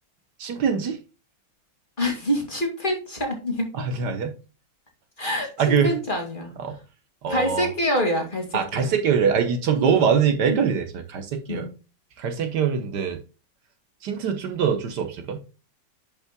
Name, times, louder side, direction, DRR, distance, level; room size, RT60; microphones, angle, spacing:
voice 1, 0.4-1.0 3.7-4.4 5.6-5.9 6.6-6.8 7.2-7.7 8.5-11.7 12.2-13.2 14.0-15.4, right 7 dB, 70° right, 7 dB, 1.5 m, -23 dB
voice 2, 2.0-3.7 5.2-6.5 7.3-8.9 9.8-10.1 10.4-10.7 11.5-11.7, equal, 25° left, 2 dB, 2.3 m, -26 dB
10.5 x 5.5 x 2.2 m, 0.32 s
omnidirectional pair, 2.0 m